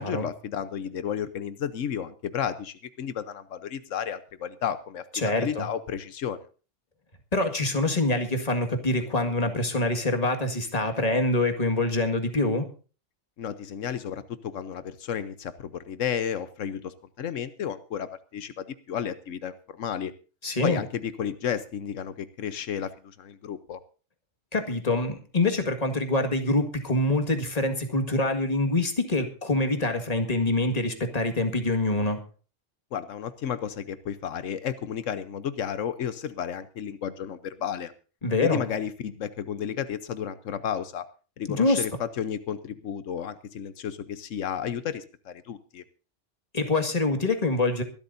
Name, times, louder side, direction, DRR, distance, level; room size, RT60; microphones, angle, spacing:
voice 1, 0.0-5.0 5.4-6.4 13.4-20.1 20.6-23.8 32.9-37.9 38.4-41.0 41.4-45.8, left 8 dB, 90° left, 12 dB, 1.2 m, -32 dB
voice 2, 5.1-5.7 7.3-12.7 20.4-20.8 24.5-32.2 38.2-38.6 41.5-41.8 46.5-47.8, left 2 dB, 30° left, 5 dB, 1.9 m, -25 dB
23.5 x 12.5 x 2.7 m, 0.36 s
omnidirectional pair, 1.3 m